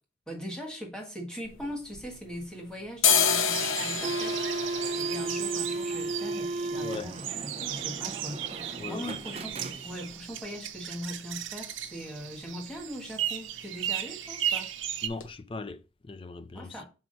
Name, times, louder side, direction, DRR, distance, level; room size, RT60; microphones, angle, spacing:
voice 1, 0.3-14.7 16.5-16.9, equal, 5° left, 1.5 m, -41 dB
sound 1, 1.4-2.5 2.9-10.6 10.9-11.0 11.2-11.8 12.1-12.3 12.6-12.8 13.1-13.8 14.2-14.3 14.8-14.9 15.2-15.3, left 6 dB, 80° left, 0.9 m, -31 dB
sound 2, 3.5-15.1, right 11 dB, 75° right, 0.6 m, -36 dB
sound 3, 3.8-10.2, right 2 dB, 30° right, 0.5 m, -35 dB
voice 2, 6.8-7.1 8.5-9.2 15.0-16.8, left 3 dB, 25° left, 0.4 m, -40 dB
6.3 x 4.5 x 3.9 m
head